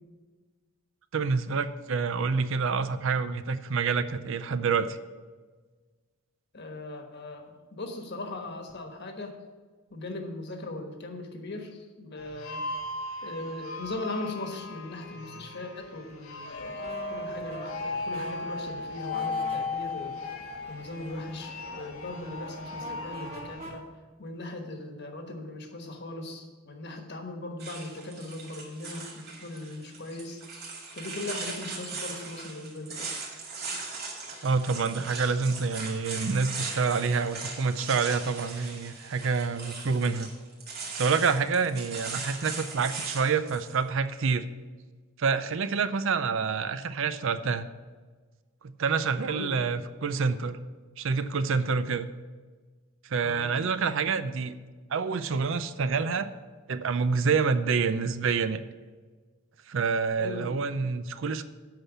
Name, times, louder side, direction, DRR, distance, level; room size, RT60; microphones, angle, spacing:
voice 1, 1.1-5.0 34.4-40.3 40.9-44.5 45.2-47.7 48.6-50.6 51.0-52.1 53.1-54.6 54.9-56.3 56.7-58.6 59.7-61.4, right 5 dB, 60° right, 12 dB, 0.5 m, -27 dB
voice 2, 6.5-9.3 9.9-12.7 13.2-20.2 20.7-23.8 24.2-30.4 30.9-33.1 33.6-33.7 41.6-41.7 49.3-49.6 53.2-53.5 60.2-60.6, left 2 dB, 50° left, 4 dB, 1.3 m, -39 dB
sound 1, 12.2-23.7, left 3 dB, 75° left, 1.0 m, -37 dB
sound 2, 16.5-23.8, right 2 dB, 30° right, 1.4 m, -46 dB
sound 3, 27.6-43.8, right 4 dB, 45° right, 2.3 m, -39 dB
8.8 x 5.6 x 7.1 m, 1.4 s
head